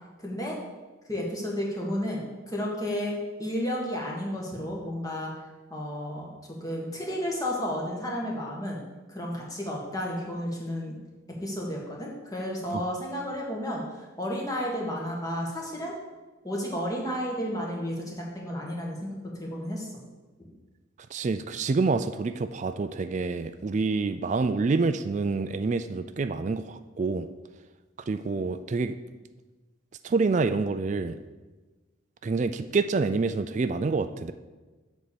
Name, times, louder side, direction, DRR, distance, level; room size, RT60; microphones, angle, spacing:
voice 1, 0.2-0.6 1.1-5.3 5.7-6.3 6.6-8.8 9.1-11.0 11.4-13.8 14.2-15.9 16.4-19.9, equal, 15° left, -2 dB, 1.5 m, -32 dB
voice 2, 21.1-27.3 28.1-29.0 30.0-31.2 32.2-34.3, right 4 dB, 35° right, 11 dB, 0.3 m, -27 dB
7.8 x 4.2 x 6.8 m, 1.2 s
head